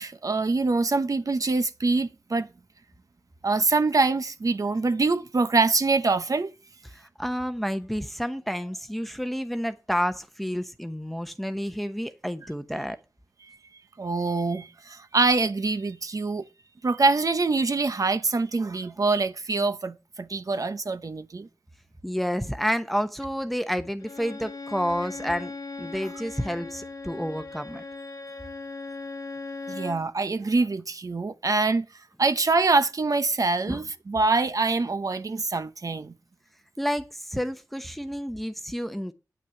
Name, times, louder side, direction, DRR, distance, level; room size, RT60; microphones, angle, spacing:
voice 1, 0.0-2.5 3.4-6.5 13.4-13.6 14.0-16.4 16.8-21.5 29.7-31.8 32.2-36.1, right 3 dB, 60° right, 0.9 m, -24 dB
voice 2, 6.9-13.0 22.0-25.5 25.8-27.8 33.7-33.8 36.8-39.1, equal, ahead, 0.9 m, -30 dB
Bowed string instrument, 24.0-30.1, left 3 dB, 85° left, 1.7 m, -38 dB
9.4 x 6.0 x 7.0 m
wide cardioid pair, 65°, 7 cm